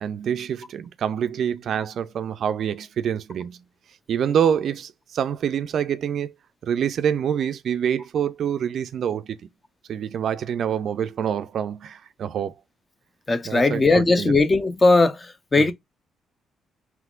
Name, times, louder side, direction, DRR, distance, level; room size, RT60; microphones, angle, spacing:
voice 1, 0.0-3.6 4.1-6.3 6.6-9.4 9.9-12.5 13.4-14.3 15.6-15.7, right 8 dB, 65° right, 0.3 m, -26 dB
voice 2, 13.3-15.2 15.5-15.7, left 3 dB, 25° left, 0.6 m, -18 dB
3.4 x 3.0 x 2.3 m
cardioid pair, 90°, 0 cm